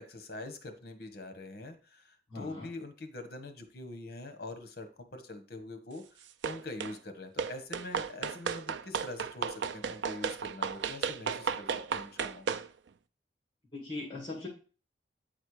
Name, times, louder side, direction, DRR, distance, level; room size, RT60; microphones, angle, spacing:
voice 1, 0.0-6.0 6.4-12.5, left 2 dB, 55° left, 8 dB, 1.2 m, -44 dB
voice 2, 2.3-2.7 13.7-14.5, left 2 dB, 25° left, -4 dB, 2.3 m, -40 dB
sound 1, 6.4-7.0 7.4-12.7, right 6 dB, 75° right, 0.4 m, -34 dB
9.0 x 4.3 x 4.7 m, 0.36 s
head